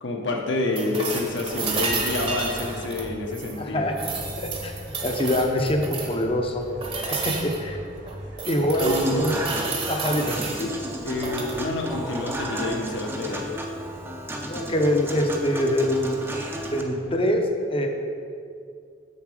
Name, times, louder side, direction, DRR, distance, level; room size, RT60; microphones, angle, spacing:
voice 1, 0.0-3.9 8.8-9.5 10.6-10.7 11.0-13.5, left 2 dB, 70° left, 1 dB, 1.1 m, -28 dB
sound 1, 0.7-3.6 3.9-6.2 6.8-7.6 8.1-10.6 11.1-11.6 13.6-13.7, right 4 dB, 30° right, 0.9 m, -31 dB
sound 2, 1.3-17.1, equal, 80° right, 2.2 m, -42 dB
voice 2, 3.6-4.0 4.3-4.7 5.0-6.6 7.2-7.8 8.5-9.4 9.9-10.4 14.5-16.2 16.7-17.9, equal, 30° left, 3 dB, 0.7 m, -24 dB
Human voice / Acoustic guitar / Piano, 8.8-16.8, right 1 dB, 10° right, 0.6 m, -33 dB
7.2 x 6.7 x 4.9 m, 2.3 s
head